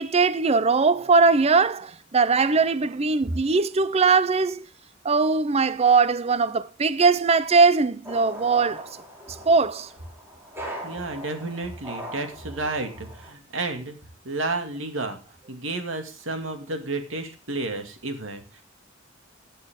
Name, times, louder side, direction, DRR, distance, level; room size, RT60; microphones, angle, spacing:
voice 1, 0.0-4.6 5.0-8.9 9.5-9.9, right 4 dB, 30° right, 0.5 m, -20 dB
sound 1, 8.0-13.3, equal, 10° right, 4.2 m, -40 dB
voice 2, 10.8-14.0 14.2-15.2 15.5-18.6, right 2 dB, 70° right, 2.4 m, -31 dB
16.5 x 8.6 x 3.7 m
head